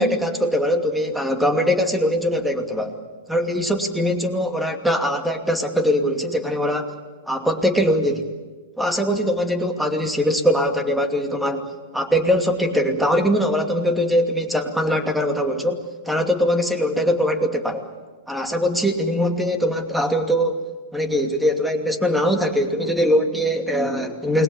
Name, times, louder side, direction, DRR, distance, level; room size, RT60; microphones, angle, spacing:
voice 1, 0.0-3.0 3.3-6.9 7.3-8.3 8.8-17.9 18.3-20.7 20.9-24.4, equal, ahead, 5 dB, 2.6 m, -21 dB
29.0 x 21.0 x 7.0 m, 1.3 s
hypercardioid pair, 105°, 0 cm